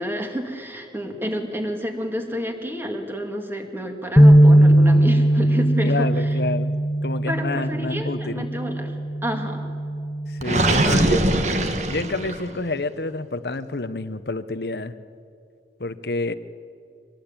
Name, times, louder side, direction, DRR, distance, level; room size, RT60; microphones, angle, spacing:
voice 1, 0.0-6.4 7.3-9.0 9.2-9.7 10.6-11.6, equal, 10° right, 4 dB, 2.3 m, -30 dB
sound 1, 4.2-10.4, right 1 dB, 15° left, 1.2 m, -18 dB
voice 2, 5.8-6.7 7.0-8.5 10.3-11.2 11.9-14.9 15.8-16.3, left 3 dB, 65° left, 13 dB, 1.0 m, -28 dB
Gurgling, 10.4-12.6, right 1 dB, 40° right, 1.6 m, -21 dB
25.0 x 19.0 x 9.0 m, 2.4 s
head